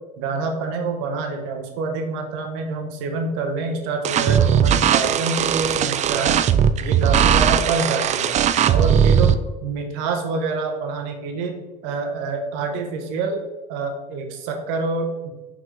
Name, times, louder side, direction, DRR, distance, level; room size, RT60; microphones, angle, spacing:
voice 1, 0.2-6.4 6.8-8.3 8.7-9.3 9.6-13.4 13.7-15.3, right 4 dB, 70° right, 4 dB, 1.3 m, -26 dB
sound 1, 4.0-9.3, right 8 dB, 35° right, 0.4 m, -18 dB
5.4 x 5.2 x 3.8 m, 1.1 s
hypercardioid pair, 85°, 21 cm